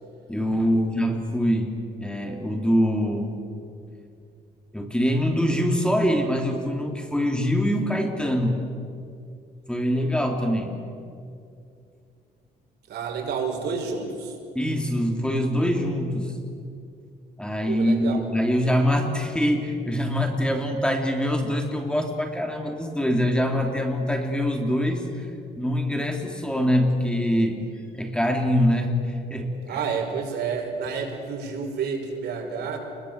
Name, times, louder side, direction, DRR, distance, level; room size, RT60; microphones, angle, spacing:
voice 1, 0.3-1.7 2.0-3.4 4.7-8.6 9.7-10.8 14.5-16.3 17.4-25.3 25.6-27.6 27.9-29.8, equal, 5° left, 2 dB, 3.2 m, -24 dB
voice 2, 12.9-14.4 17.6-18.2 29.7-32.8, right 5 dB, 80° right, 1 dB, 5.5 m, -30 dB
29.5 x 21.5 x 8.1 m, 2.5 s
cardioid pair, 130°, 17 cm